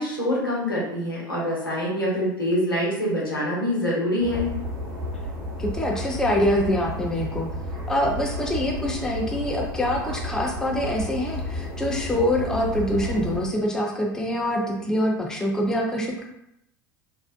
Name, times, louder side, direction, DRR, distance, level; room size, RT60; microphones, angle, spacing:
voice 1, 0.0-4.5, left 1 dB, 85° left, -6 dB, 0.8 m, -25 dB
sound 1, 4.2-13.4, equal, 40° right, 1.0 m, -32 dB
voice 2, 5.6-7.5 7.9-16.2, left 1 dB, 5° left, 0 dB, 0.4 m, -25 dB
2.6 x 2.1 x 2.4 m, 0.81 s
figure-of-eight pair, 75°, 11 cm